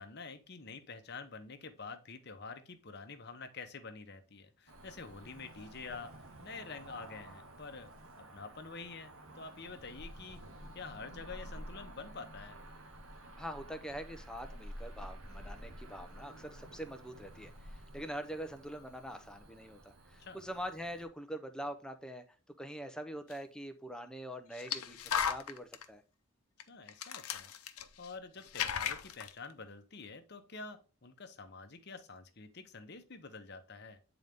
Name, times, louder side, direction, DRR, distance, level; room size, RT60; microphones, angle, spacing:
voice 1, 0.0-6.1 6.4-7.9 8.3-10.4 10.7-12.6 20.2-20.4 26.7-27.5 28.0-34.0, left 4 dB, 50° left, 8 dB, 0.9 m, -47 dB
Cricket / Motor vehicle (road), 4.7-21.1, right 1 dB, 70° right, 1.1 m, -51 dB
voice 2, 13.4-22.2 22.6-25.0 25.3-26.0, equal, 5° left, 7 dB, 0.6 m, -44 dB
sound 1, 23.3-23.4 24.5-25.8 26.6-26.7 26.9-28.2 28.4-29.3, left 8 dB, 90° left, 0.7 m, -36 dB
8.9 x 3.9 x 3.5 m, 0.35 s
head